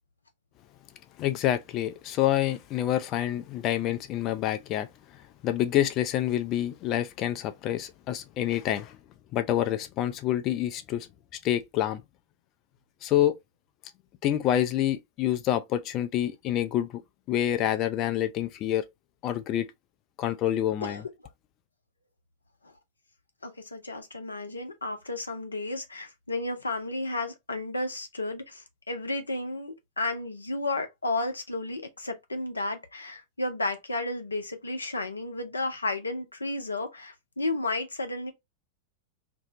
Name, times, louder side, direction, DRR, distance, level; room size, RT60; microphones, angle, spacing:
voice 1, 1.2-4.9 5.4-9.0 9.3-11.1 11.4-12.0 13.0-13.3 14.2-17.0 17.3-18.9 19.2-19.7 20.2-21.0, left 12 dB, 35° left, 0.4 m, -27 dB
voice 2, 23.4-38.3, left 2 dB, 80° left, 0.6 m, -33 dB
2.6 x 2.1 x 3.7 m
figure-of-eight pair, 90°, 0 cm